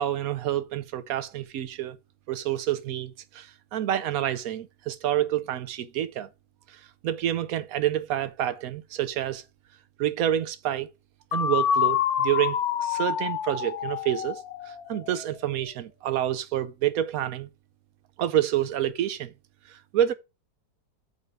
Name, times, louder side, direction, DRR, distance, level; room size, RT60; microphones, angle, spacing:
voice 1, 0.0-2.0 2.3-6.3 6.7-9.4 10.0-10.9 11.3-17.5 18.2-19.3 19.7-20.1, right 11 dB, 70° right, 1.0 m, -28 dB
sound 1, 11.3-15.2, left 8 dB, 70° left, 1.2 m, -27 dB
5.6 x 4.6 x 5.2 m
omnidirectional pair, 1.8 m